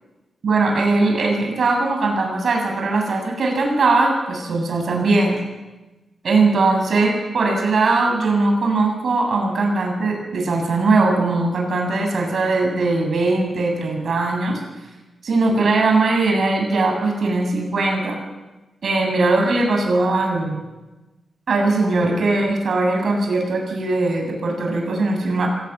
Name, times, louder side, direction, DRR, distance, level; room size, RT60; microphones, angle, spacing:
voice 1, 0.4-5.4 6.2-14.6 15.2-18.2 18.8-20.6 21.5-25.5, right 3 dB, 55° right, 2 dB, 7.7 m, -20 dB
25.5 x 18.0 x 9.6 m, 1.1 s
wide cardioid pair, 155°, 0 cm